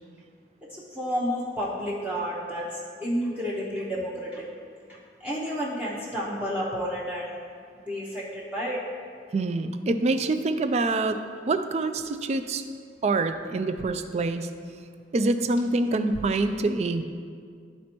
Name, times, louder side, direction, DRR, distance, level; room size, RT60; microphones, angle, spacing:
voice 1, 0.7-2.7 3.0-4.5 5.2-7.3 7.9-8.8, equal, 10° right, -7 dB, 0.7 m, -30 dB
voice 2, 9.3-12.6 13.0-14.5 15.1-17.0, right 2 dB, 40° right, 9 dB, 0.3 m, -26 dB
12.0 x 4.2 x 3.0 m, 2.2 s
head